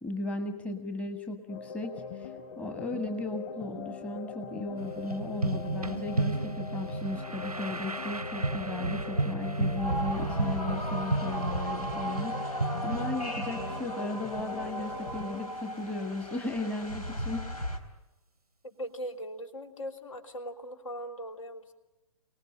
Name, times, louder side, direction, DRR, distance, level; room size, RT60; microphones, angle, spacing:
voice 1, 0.0-17.5, left 2 dB, 5° left, 5 dB, 1.4 m, -36 dB
sound 1, 1.5-15.4, left 6 dB, 35° left, 3.9 m, -42 dB
sound 2, 4.8-15.1, right 2 dB, 90° right, 0.9 m, -33 dB
sound 3, 9.8-17.8, equal, 85° left, 3.7 m, -36 dB
voice 2, 18.6-21.7, equal, 60° left, 5 dB, 3.1 m, -40 dB
28.5 x 19.5 x 10.0 m, 1.0 s
figure-of-eight pair, 125°, 19 cm